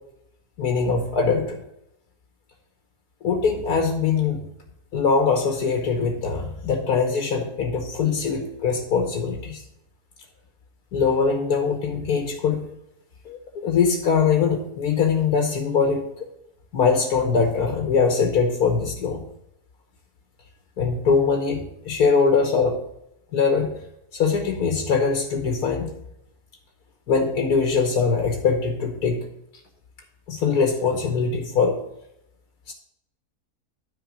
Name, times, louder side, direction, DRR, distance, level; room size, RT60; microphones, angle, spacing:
voice 1, 0.6-1.6 3.2-4.4 4.9-9.6 10.9-12.6 13.2-16.0 16.7-19.2 20.8-22.8 23.3-23.7 24.1-25.9 27.1-29.2 30.3-31.8 32.7-32.8, left 5 dB, 75° left, 3 dB, 1.6 m, -22 dB
9.3 x 4.6 x 6.1 m, 0.80 s
omnidirectional pair, 1.7 m